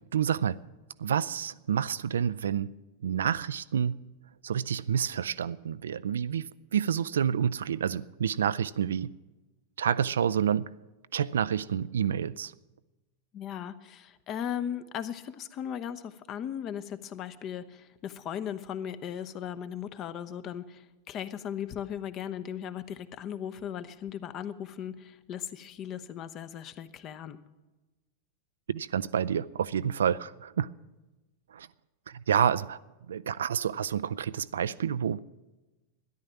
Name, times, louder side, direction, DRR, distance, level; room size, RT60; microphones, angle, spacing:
voice 1, 0.1-0.6 1.0-2.7 3.0-4.0 4.4-6.5 6.7-9.1 9.8-10.7 11.1-12.5 28.7-30.7 31.5-31.7 32.1-32.8 33.1-35.2, right 8 dB, 65° right, 0.4 m, -28 dB
voice 2, 13.3-27.4, left 9 dB, 35° left, 0.8 m, -37 dB
13.5 x 10.5 x 7.2 m
figure-of-eight pair, 90°, 0 cm